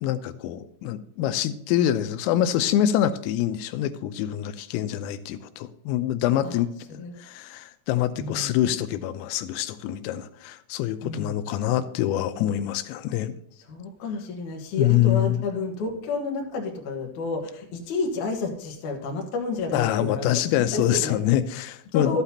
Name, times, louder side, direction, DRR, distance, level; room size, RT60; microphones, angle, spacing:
voice 1, 0.0-6.7 7.2-13.4 14.8-15.4 19.7-22.2, left 12 dB, 85° left, 10 dB, 3.2 m, -25 dB
voice 2, 6.9-7.2 8.1-8.5 11.0-11.4 13.6-20.4 20.7-21.2 21.9-22.2, left 4 dB, 70° left, 1 dB, 1.9 m, -30 dB
13.0 x 8.9 x 2.8 m, 0.70 s
omnidirectional pair, 5.8 m